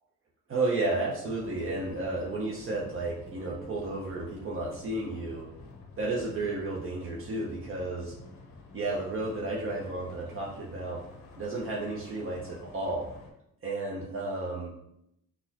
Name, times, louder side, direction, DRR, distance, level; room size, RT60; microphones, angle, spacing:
voice 1, 0.5-5.5 6.0-8.1 8.7-11.0 11.4-13.1 13.6-14.7, right 2 dB, 45° right, -4 dB, 0.7 m, -32 dB
sound 1, 1.2-13.3, left 3 dB, 75° left, 0.8 m, -49 dB
4.0 x 2.3 x 2.8 m, 0.80 s
cardioid pair, 90°, 30 cm